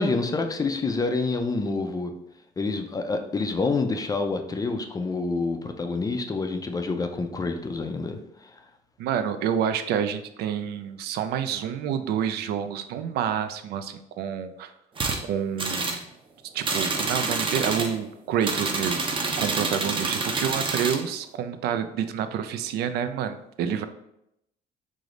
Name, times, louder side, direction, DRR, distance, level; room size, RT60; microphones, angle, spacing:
voice 1, 0.0-2.1 2.6-8.2, left 3 dB, 20° left, 6 dB, 0.4 m, -27 dB
voice 2, 9.0-14.7 15.2-16.0 16.5-23.9, right 8 dB, 75° right, 10 dB, 0.4 m, -28 dB
sound 1, 15.0-15.2 15.6-16.0 16.6-17.9 18.4-21.0, right 3 dB, 30° right, 0.6 m, -27 dB
4.8 x 2.0 x 3.8 m, 0.79 s
cardioid pair, 110°, 17 cm